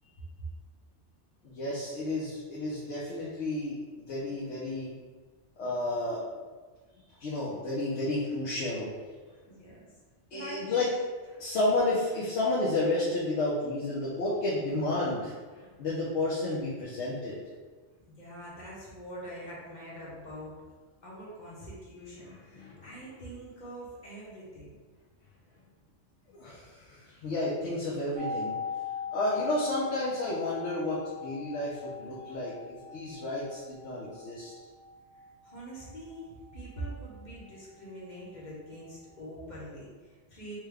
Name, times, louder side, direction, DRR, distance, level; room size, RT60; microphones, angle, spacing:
voice 1, 1.4-4.9 5.6-6.2 7.2-8.9 10.3-10.9 11.4-15.3 15.8-17.4 22.6-22.9 26.4-28.5 29.1-34.5, left 2 dB, 70° left, -7 dB, 1.0 m, -31 dB
voice 2, 9.5-9.9 10.3-10.8 11.6-12.0 18.1-20.5 21.0-24.8 26.7-26.8 35.4-40.6, right 1 dB, 45° left, -6 dB, 0.9 m, -44 dB
sound 1, 28.1-37.9 38.2-38.3, left 5 dB, 85° right, 0.9 m, -41 dB
3.2 x 2.2 x 3.4 m, 1.4 s
omnidirectional pair, 1.2 m